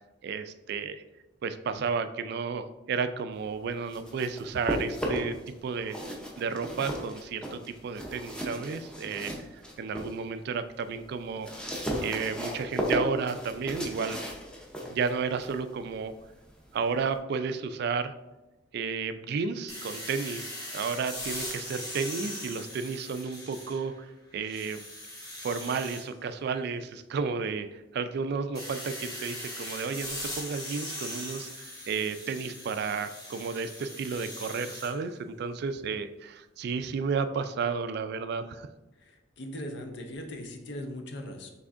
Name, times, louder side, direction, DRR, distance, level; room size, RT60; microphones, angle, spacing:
voice 1, 0.2-1.0 1.4-5.4 5.6-14.2 14.9-16.1 16.7-18.1 18.7-24.1 24.3-24.8 25.4-38.7, right 5 dB, 60° right, 11 dB, 0.3 m, -32 dB
sound 1, 3.7-5.5 5.8-10.2 10.6-17.2, equal, 5° left, 0.6 m, -36 dB
sound 2, 19.7-24.0 24.4-26.0 28.5-34.9, left 1 dB, 20° left, 1.2 m, -40 dB
voice 2, 38.9-41.5, left 1 dB, 65° left, 4 dB, 0.6 m, -39 dB
5.9 x 3.4 x 2.5 m, 1.0 s
head